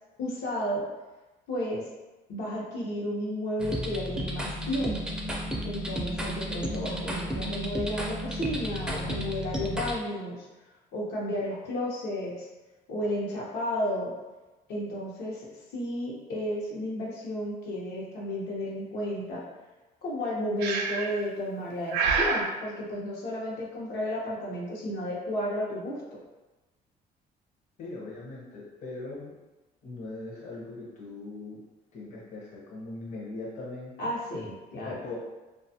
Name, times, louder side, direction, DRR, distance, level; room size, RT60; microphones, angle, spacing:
voice 1, 0.2-0.8 1.5-1.9 2.3-5.1 5.6-10.5 10.9-12.5 12.9-14.1 14.7-15.5 15.7-19.4 20.0-26.2 34.0-34.9, equal, 75° left, -4 dB, 0.8 m, -32 dB
sound 1, 3.6-9.9, equal, 5° right, 0.4 m, -33 dB
Breathing, 20.6-21.2 21.9-22.5, right 5 dB, 85° right, 0.4 m, -27 dB
voice 2, 27.8-29.4 29.8-31.6 31.9-34.1 34.8-35.2, left 2 dB, 45° left, -5 dB, 0.7 m, -40 dB
2.4 x 2.3 x 2.7 m, 1.1 s
cardioid pair, 110°, 17 cm